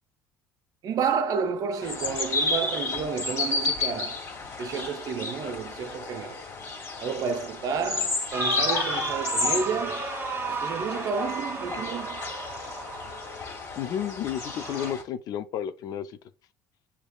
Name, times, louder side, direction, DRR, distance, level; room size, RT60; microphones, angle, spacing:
voice 1, 0.8-4.2 4.6-6.4 7.0-10.1 10.5-12.2, right 6 dB, 50° right, 0.7 m, -30 dB
sound 1, 1.8-15.0, left 3 dB, 35° left, 2.0 m, -32 dB
sound 2, 8.3-13.4 14.3-14.9, right 4 dB, 30° right, 1.3 m, -34 dB
voice 2, 13.8-16.1, left 10 dB, 55° left, 0.5 m, -32 dB
7.8 x 2.8 x 2.4 m
hypercardioid pair, 65°, 8 cm